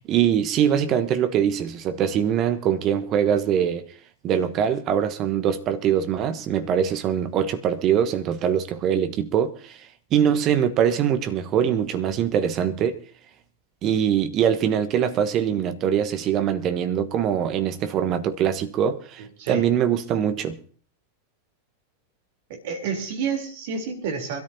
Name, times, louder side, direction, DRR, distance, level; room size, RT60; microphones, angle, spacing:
voice 1, 0.1-3.8 4.2-9.8 10.1-13.0 13.8-20.6, right 9 dB, 35° right, 1.2 m, -23 dB
voice 2, 22.5-24.4, right 6 dB, 50° right, 3.6 m, -29 dB
25.0 x 13.0 x 2.8 m
figure-of-eight pair, 90°, 0 cm